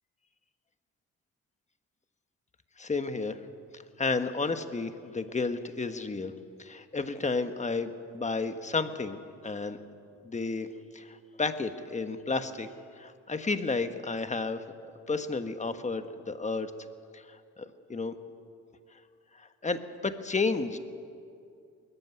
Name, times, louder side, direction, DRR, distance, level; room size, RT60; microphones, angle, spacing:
voice 1, 2.8-3.4 4.0-6.3 6.6-9.2 9.4-9.8 10.2-10.7 10.9-12.7 13.0-14.6 15.1-16.7 17.1-18.1 19.4-20.8, left 3 dB, 25° left, 9 dB, 1.3 m, -32 dB
20.5 x 14.0 x 9.5 m, 2.4 s
cardioid pair, 90°, 30 cm